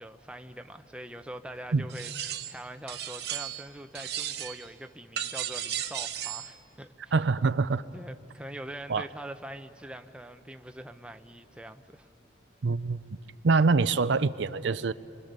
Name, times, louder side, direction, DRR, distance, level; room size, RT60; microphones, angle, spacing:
voice 1, 0.0-7.2 7.9-12.1, right 1 dB, 5° right, 7 dB, 0.7 m, -43 dB
sound 1, 1.9-2.6 2.9-3.7 3.9-4.7 5.2-6.5, right 10 dB, 60° right, 1.2 m, -35 dB
voice 2, 7.1-7.8 8.9-9.0 12.6-13.0 13.4-14.9, right 4 dB, 75° right, 14 dB, 0.5 m, -24 dB
29.5 x 24.0 x 6.7 m, 2.7 s
head